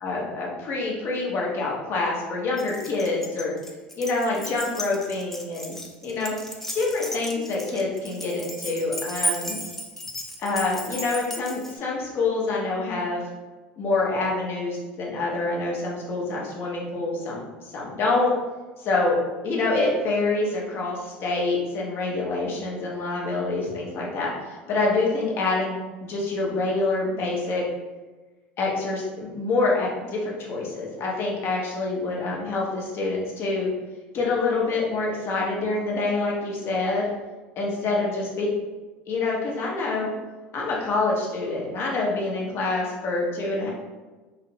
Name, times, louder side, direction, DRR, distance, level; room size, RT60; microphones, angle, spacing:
voice 1, 0.0-3.5 4.0-5.7 6.0-6.3 6.7-9.6 10.4-13.2 13.8-17.4 17.7-18.3 18.8-19.2 19.4-27.7 28.6-33.7 34.1-37.1 37.6-38.5 39.1-40.1 40.5-43.7, left 3 dB, 50° left, -3 dB, 0.7 m, -26 dB
Keys jangling, 2.6-11.8, equal, 5° left, 0.3 m, -34 dB
2.5 x 2.0 x 2.5 m, 1.2 s
hypercardioid pair, 85°, 5 cm